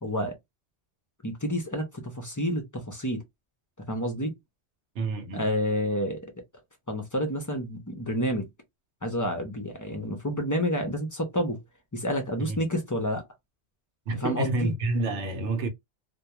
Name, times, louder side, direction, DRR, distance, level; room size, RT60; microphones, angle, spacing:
voice 1, 0.0-0.3 1.2-3.2 3.9-4.3 5.3-6.2 6.9-8.5 9.0-11.6 11.9-13.2 14.2-14.7, equal, 30° left, 0.3 m, -29 dB
voice 2, 4.9-5.5 12.4-12.6 14.1-15.7, right 2 dB, 80° right, 1.0 m, -29 dB
2.3 x 2.2 x 2.9 m
omnidirectional pair, 1.2 m